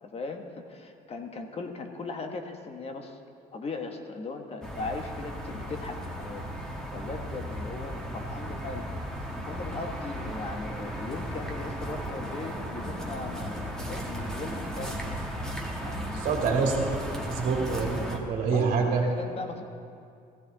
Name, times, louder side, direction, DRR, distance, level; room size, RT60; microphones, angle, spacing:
voice 1, 0.0-3.2 3.5-6.5 6.9-9.0 9.4-15.2 15.8-16.6 18.4-19.6, left 3 dB, 35° left, 5 dB, 1.2 m, -38 dB
sound 1, 4.6-18.2, equal, 5° left, 1.6 m, -35 dB
voice 2, 16.2-16.8 17.3-19.0, right 5 dB, 50° right, -1 dB, 2.2 m, -26 dB
15.5 x 14.0 x 3.9 m, 2.4 s
cardioid pair, 110°, 17 cm